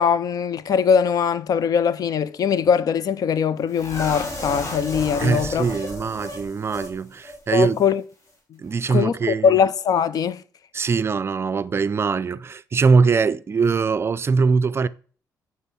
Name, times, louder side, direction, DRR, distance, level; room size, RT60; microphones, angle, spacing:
voice 1, 0.0-5.7 7.5-8.0 8.9-10.4, left 7 dB, 60° left, 0.6 m, -21 dB
sound 1, 3.7-6.9 7.2-7.4 7.7-7.9, left 1 dB, 45° left, 3.3 m, -33 dB
voice 2, 5.2-7.8 8.6-9.6 10.7-14.9, right 5 dB, 35° right, 0.4 m, -22 dB
8.3 x 4.8 x 5.7 m
cardioid pair, 95°, 7 cm